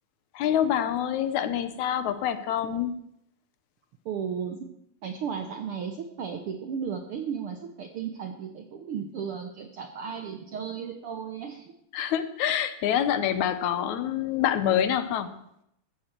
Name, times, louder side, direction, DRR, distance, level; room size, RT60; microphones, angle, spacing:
voice 1, 0.3-2.9 11.9-15.3, left 10 dB, 75° left, 11 dB, 2.2 m, -26 dB
voice 2, 4.0-4.7 5.0-11.7, right 7 dB, 65° right, 5 dB, 1.4 m, -34 dB
14.5 x 14.0 x 4.5 m, 0.78 s
omnidirectional pair, 3.5 m